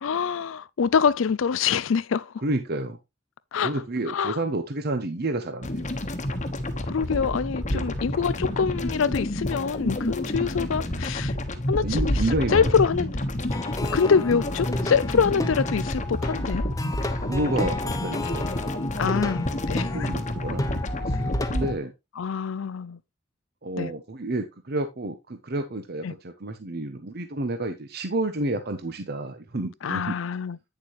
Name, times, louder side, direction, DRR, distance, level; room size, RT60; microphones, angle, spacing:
voice 1, 0.0-2.3 3.5-3.7 4.1-4.4 6.8-11.3 11.7-12.2 12.5-13.1 13.9-16.7 19.0-20.1 21.1-21.2 22.2-23.0 23.8-23.9 26.0-26.1 29.8-30.6, left 6 dB, 75° left, 0.5 m, -25 dB
voice 2, 2.4-3.0 3.6-5.9 7.1-7.2 7.7-7.9 11.8-12.7 17.3-18.5 19.0-19.3 19.9-21.9 23.6-30.2, right 2 dB, 50° right, 0.9 m, -30 dB
sound 1, 5.6-21.7, left 1 dB, 35° left, 1.2 m, -29 dB
Plucked string instrument, 13.5-21.8, left 2 dB, 15° left, 1.0 m, -33 dB
9.6 x 6.9 x 3.1 m
head